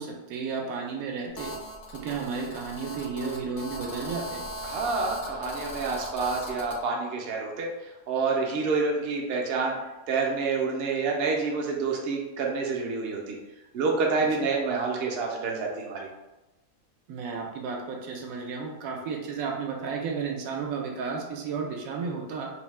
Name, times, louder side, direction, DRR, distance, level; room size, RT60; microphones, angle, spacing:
voice 1, 0.0-1.5 1.9-4.4 14.2-14.3 17.1-22.5, right 5 dB, 80° right, 0 dB, 1.0 m, -33 dB
Telephone, 1.4-6.8, equal, 65° left, 0.6 m, -38 dB
voice 2, 4.6-9.8 10.1-13.4 13.7-16.1, right 4 dB, 65° right, 0 dB, 0.6 m, -28 dB
2.7 x 2.1 x 3.1 m, 1.0 s
omnidirectional pair, 1.4 m